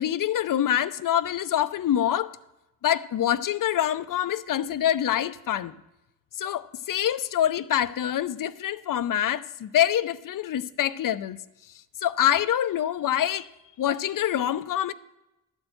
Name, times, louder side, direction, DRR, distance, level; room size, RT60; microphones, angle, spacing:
voice 1, 0.0-2.3 2.8-5.7 6.4-11.4 12.0-13.5 13.8-14.9, left 11 dB, 45° left, 0.6 m, -25 dB
12.0 x 4.5 x 7.9 m
hypercardioid pair, 40°, 45 cm